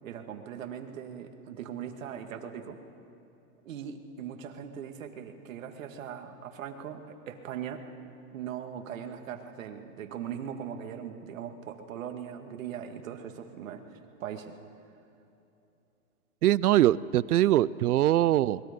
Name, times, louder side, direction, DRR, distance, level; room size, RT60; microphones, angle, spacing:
voice 1, 0.0-2.8 3.6-7.9 8.3-13.8 14.2-14.6, right 8 dB, 60° right, 5 dB, 2.1 m, -40 dB
voice 2, 16.4-18.6, right 13 dB, 85° right, 20 dB, 0.7 m, -22 dB
28.0 x 21.0 x 5.3 m, 2.9 s
hypercardioid pair, 165°, 44 cm